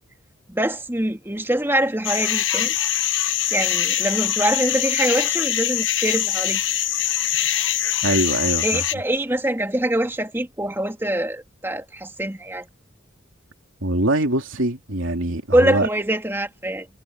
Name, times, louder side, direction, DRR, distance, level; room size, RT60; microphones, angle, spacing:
voice 1, 0.5-2.7 3.2-6.6 8.6-12.6 15.5-16.9, right 1 dB, 10° right, 2.9 m, -24 dB
sound 1, 2.0-8.9, left 11 dB, 65° left, 1.2 m, -23 dB
voice 2, 8.0-8.8 13.8-15.9, right 1 dB, 75° right, 2.8 m, -23 dB
head